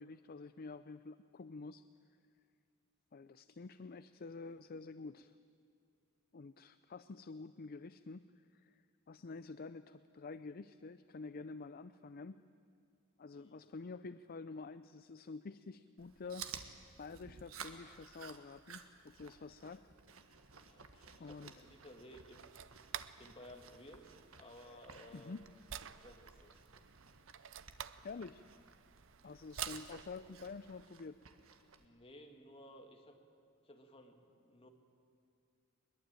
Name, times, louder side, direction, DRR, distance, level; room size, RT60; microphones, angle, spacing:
voice 1, 0.0-1.9 3.1-5.3 6.3-12.4 13.2-16.5 17.0-19.9 21.2-21.5 24.6-24.8 25.1-25.4 28.0-28.4 29.2-31.2, left 4 dB, 45° left, 13 dB, 0.5 m, -49 dB
Chewing mastication, 16.0-31.9, right 7 dB, 90° right, 1.5 m, -54 dB
voice 2, 20.6-22.5 23.2-25.4 25.9-26.7 31.7-33.2 33.6-34.7, equal, 30° left, 4 dB, 2.2 m, -57 dB
sound 1, 21.5-30.9, right 9 dB, 65° right, 0.6 m, -51 dB
22.0 x 21.5 x 9.0 m, 2.4 s
head